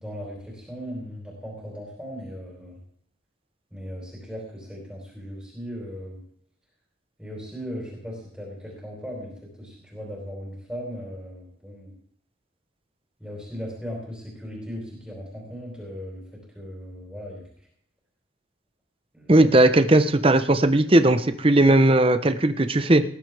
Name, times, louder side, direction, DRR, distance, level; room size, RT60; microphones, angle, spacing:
voice 1, 0.0-2.8 3.7-6.2 7.2-11.9 13.2-17.4 19.1-19.5, equal, 5° right, -4 dB, 4.3 m, -37 dB
voice 2, 19.3-23.0, right 1 dB, 30° right, 9 dB, 0.9 m, -18 dB
19.0 x 11.5 x 3.5 m, 0.66 s
head